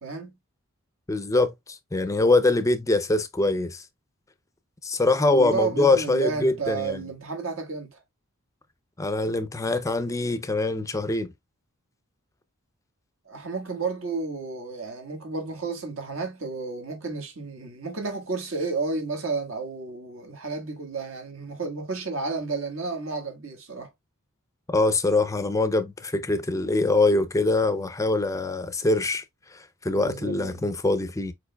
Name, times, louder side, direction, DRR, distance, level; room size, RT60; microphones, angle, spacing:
voice 1, 0.0-0.4 5.2-8.0 13.2-23.9 29.9-30.6, right 4 dB, 60° right, 1.6 m, -32 dB
voice 2, 1.1-3.8 4.8-7.0 9.0-11.3 24.7-29.2 29.5-31.3, left 2 dB, 15° left, 0.5 m, -23 dB
4.8 x 4.5 x 2.2 m
head